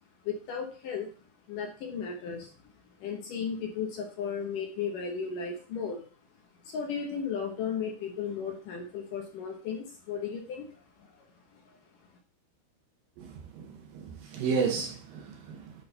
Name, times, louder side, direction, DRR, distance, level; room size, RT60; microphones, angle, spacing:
voice 1, 0.2-1.1 1.5-2.5 3.0-6.0 6.6-10.7 11.0-11.2, left 6 dB, 70° left, 1 dB, 2.2 m, -35 dB
voice 2, 13.2-15.7, right 5 dB, 75° right, 2 dB, 2.4 m, -33 dB
10.5 x 3.8 x 3.9 m, 0.40 s
omnidirectional pair, 4.6 m